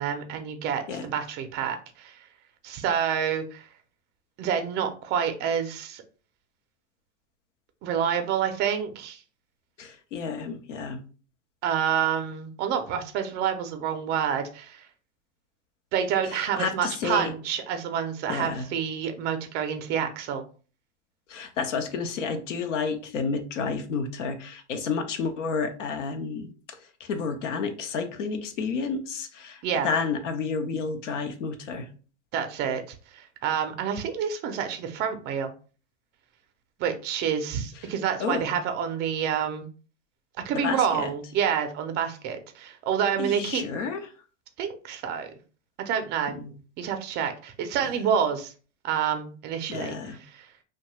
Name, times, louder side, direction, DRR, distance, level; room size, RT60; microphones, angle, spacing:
voice 1, 0.0-2.2 2.6-3.7 4.4-6.0 7.8-9.2 11.6-14.9 15.9-20.4 29.6-29.9 32.3-32.8 33.1-35.5 36.8-39.7 40.4-43.6 44.6-45.3 45.8-46.3 46.8-48.5 48.8-49.9 50.3-50.5, right 8 dB, 30° right, 7 dB, 0.5 m, -28 dB
voice 2, 9.8-11.0 16.3-17.3 18.3-18.7 21.3-31.9 37.8-37.9 38.2-38.5 40.5-41.1 43.2-44.1 46.3-46.5 47.8-47.9 49.7-50.2, left 5 dB, 80° left, 7 dB, 0.7 m, -31 dB
2.6 x 2.2 x 3.0 m, 0.37 s
hypercardioid pair, 120°, 36 cm